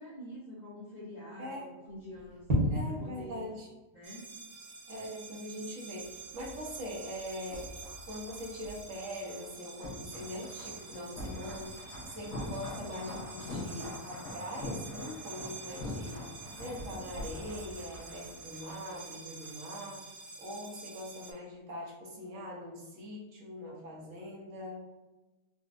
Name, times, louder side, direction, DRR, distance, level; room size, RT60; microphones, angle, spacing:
voice 1, 0.0-3.5 3.9-4.3, left 1 dB, 45° left, -8 dB, 0.6 m, -47 dB
voice 2, 1.4-1.7 2.7-3.7 4.9-7.7 8.1-16.3 16.6-24.9, left 1 dB, 65° right, -3 dB, 1.1 m, -42 dB
sound 1, 1.9-19.0, equal, 35° right, 0.9 m, -42 dB
sound 2, 4.0-21.3, right 5 dB, 85° right, 1.0 m, -48 dB
sound 3, 6.0-19.8 20.0-20.2, left 1 dB, 80° left, 1.3 m, -44 dB
4.0 x 2.2 x 2.4 m, 1.1 s
omnidirectional pair, 1.5 m